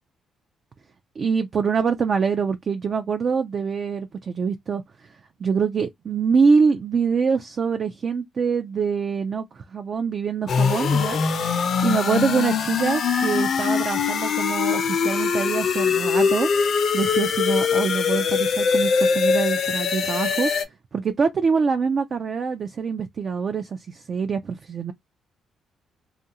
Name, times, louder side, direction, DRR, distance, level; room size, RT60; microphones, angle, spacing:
voice 1, 1.2-4.8 5.4-11.2 11.8-16.5 16.9-20.5 20.9-24.9, right 5 dB, 45° right, 0.3 m, -24 dB
sound 1, 10.5-20.6, left 6 dB, 60° left, 0.5 m, -22 dB
2.4 x 2.2 x 2.8 m
cardioid pair, 90°, 0 cm